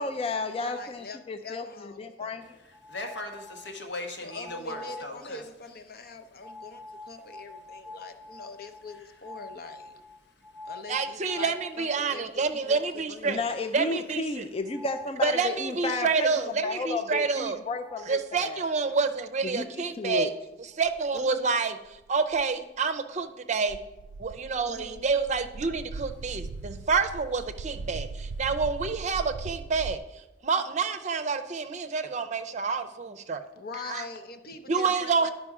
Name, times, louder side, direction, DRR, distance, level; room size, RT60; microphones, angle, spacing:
voice 1, 0.0-2.5 13.3-16.3 16.6-18.6 19.4-20.3, left 3 dB, 35° left, 7 dB, 0.4 m, -32 dB
voice 2, 0.6-2.4 4.2-9.9 10.6-13.5 21.1-21.5 24.7-25.0 33.6-35.3, left 3 dB, 55° left, 8 dB, 0.7 m, -43 dB
sound 1, 2.7-3.8 4.3-5.2 6.4-12.0 12.5-12.6 13.0-13.1 14.7-15.2 17.5-17.6 17.8-18.2, left 2 dB, 5° left, 0.9 m, -45 dB
voice 3, 2.9-5.4, left 1 dB, 85° left, 3 dB, 1.3 m, -37 dB
voice 4, 10.9-13.4 13.7-14.4 15.2-17.6 18.1-20.3 20.6-21.8 22.1-23.8 24.2-30.0 30.4-33.4 33.9-34.0 34.7-35.3, right 4 dB, 40° right, 9 dB, 0.5 m, -28 dB
sound 2, 20.9-21.0 21.8-22.4 23.7-30.0, right 4 dB, 90° right, 0.3 m, -39 dB
11.0 x 5.2 x 4.8 m, 1.0 s
head